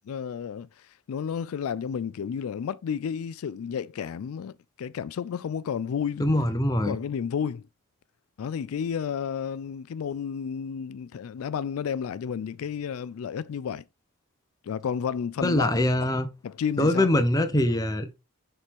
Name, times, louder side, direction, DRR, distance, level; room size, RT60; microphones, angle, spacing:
voice 1, 0.1-6.2 6.8-7.6 8.4-13.8 14.6-16.2 16.4-17.1, left 7 dB, 80° left, 0.3 m, -32 dB
voice 2, 6.2-7.0 15.4-16.3 16.8-18.1, left 1 dB, 15° left, 0.8 m, -23 dB
6.6 x 4.5 x 3.5 m
head